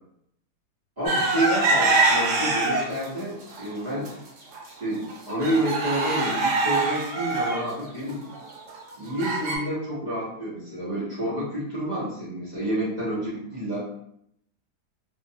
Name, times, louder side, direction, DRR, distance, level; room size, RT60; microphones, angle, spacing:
voice 1, 1.0-4.1 4.7-8.3 9.0-13.8, right 1 dB, 35° right, -8 dB, 0.7 m, -29 dB
sound 1, 1.0-3.1 3.5-4.1 4.5-4.6 4.9-9.6, right 3 dB, 80° right, 1.2 m, -24 dB
2.7 x 2.5 x 2.6 m, 0.74 s
omnidirectional pair, 1.7 m